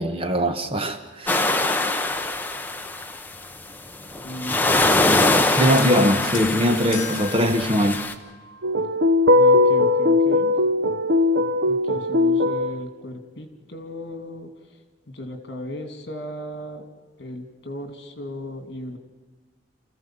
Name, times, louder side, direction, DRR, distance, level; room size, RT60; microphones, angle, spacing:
voice 1, 0.0-1.4 5.6-8.0, equal, 30° right, 8 dB, 1.1 m, -21 dB
sound 1, 1.3-3.5 4.0-8.1, left 2 dB, 10° left, 0.8 m, -23 dB
voice 2, 4.2-5.8 9.3-10.5 11.7-14.5 15.1-16.8 17.2-19.0, left 1 dB, 55° left, 6 dB, 2.6 m, -36 dB
sound 2, 5.1-8.7 9.6-9.8, left 5 dB, 40° left, 1.7 m, -38 dB
sound 3, 8.6-12.8, left 2 dB, 65° right, 0.9 m, -19 dB
27.5 x 15.0 x 7.5 m, 1.3 s
head